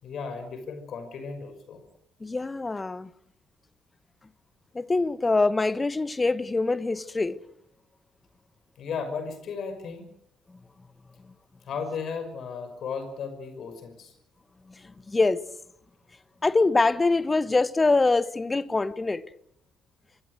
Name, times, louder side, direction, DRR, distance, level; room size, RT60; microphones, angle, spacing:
voice 1, 0.0-1.8 8.8-10.1 11.6-14.1, left 5 dB, 50° left, 5.7 m, -35 dB
voice 2, 2.2-3.1 4.7-7.4 15.1-15.4 16.4-19.2, left 3 dB, 20° left, 1.2 m, -24 dB
25.0 x 21.5 x 6.6 m
figure-of-eight pair, 45°, 0 cm